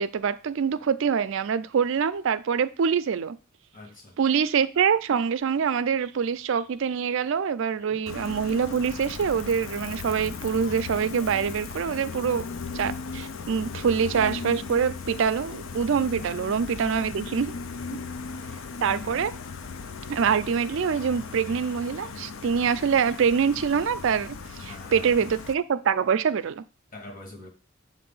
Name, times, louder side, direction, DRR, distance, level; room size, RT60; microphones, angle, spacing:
voice 1, 0.0-3.4 4.2-12.4 12.7-17.5 18.8-19.3 20.1-26.6, right 6 dB, 70° right, 0.4 m, -25 dB
voice 2, 3.7-4.2 7.8-8.0 16.2-16.4 17.0-17.4 17.8-18.1 18.8-19.0 24.7-25.3 26.9-27.5, left 1 dB, 45° left, 1.2 m, -44 dB
Gull seagull, 8.1-25.5, left 4 dB, 75° left, 0.5 m, -37 dB
7.4 x 2.6 x 5.4 m
head